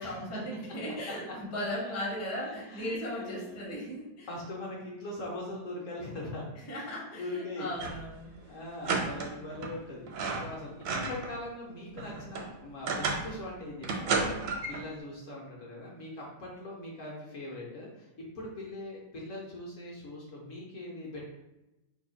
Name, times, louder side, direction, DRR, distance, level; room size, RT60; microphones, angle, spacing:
voice 1, 0.0-4.3 6.7-8.3 8.8-9.3, left 1 dB, 20° left, -6 dB, 0.4 m, -37 dB
voice 2, 1.9-2.9 3.2-3.6 4.3-6.5 6.9-7.7 8.5-10.1 10.4-21.2, left 1 dB, 60° left, -3 dB, 0.8 m, -41 dB
sound 1, 7.7-8.1 8.4-8.5 8.8-9.8 10.1-11.4 11.7-13.4 13.8-14.9, right 4 dB, 80° right, 1.4 m, -32 dB
3.3 x 2.3 x 3.8 m, 0.97 s
omnidirectional pair, 2.2 m